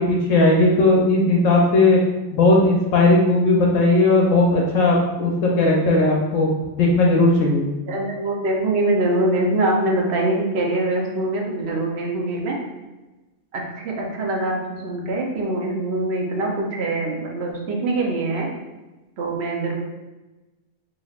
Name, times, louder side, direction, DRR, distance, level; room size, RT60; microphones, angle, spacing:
voice 1, 0.0-2.0 2.3-6.5 6.8-7.6, left 2 dB, 75° left, -2 dB, 1.0 m, -17 dB
voice 2, 7.9-12.6 13.5-18.5 19.2-19.8, right 2 dB, 60° right, -1 dB, 0.9 m, -23 dB
4.0 x 3.2 x 2.4 m, 1.1 s
omnidirectional pair, 1.4 m